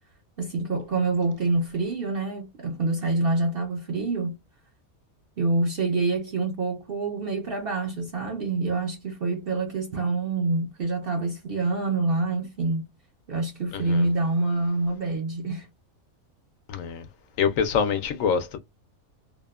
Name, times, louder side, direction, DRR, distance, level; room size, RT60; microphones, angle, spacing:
voice 1, 0.4-4.4 5.4-12.9 13.3-15.7, right 3 dB, 60° right, 0.6 m, -26 dB
voice 2, 16.7-17.0 17.4-18.6, left 7 dB, 70° left, 0.9 m, -24 dB
2.9 x 2.0 x 2.2 m
omnidirectional pair, 1.5 m